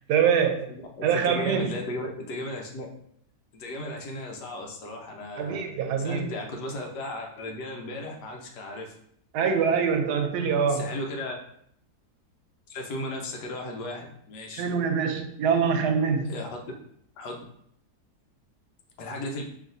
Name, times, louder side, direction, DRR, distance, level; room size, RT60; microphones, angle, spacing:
voice 1, 0.1-0.7 1.0-1.7 5.4-6.3 9.3-10.9 14.5-16.3, right 6 dB, 80° right, 5 dB, 1.1 m, -24 dB
voice 2, 0.7-2.9 3.5-5.6 6.0-8.9 10.7-11.3 12.7-14.6 16.3-16.5 17.2-17.4 19.0-19.4, left 1 dB, 90° left, 1 dB, 1.4 m, -35 dB
5.3 x 2.8 x 2.6 m, 0.68 s
omnidirectional pair, 1.7 m